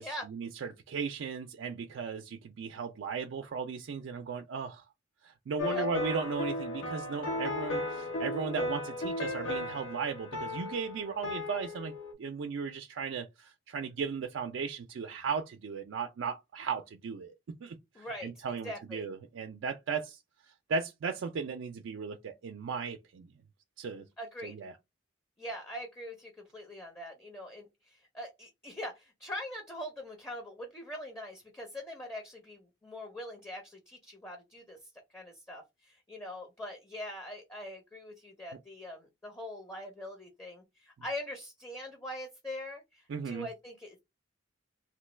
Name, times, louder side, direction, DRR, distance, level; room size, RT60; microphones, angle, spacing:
voice 1, 0.0-4.8 5.2-11.9 12.2-17.3 17.6-20.2 20.7-23.3 23.8-24.1 24.4-24.7 43.1-43.5, right 5 dB, 70° right, 0.4 m, -36 dB
sound 1, 5.6-12.1, left 2 dB, 70° left, 0.8 m, -35 dB
voice 2, 17.9-19.1 24.2-24.6 25.4-34.8 35.1-44.0, left 1 dB, 10° left, 0.6 m, -43 dB
3.0 x 2.2 x 3.1 m
head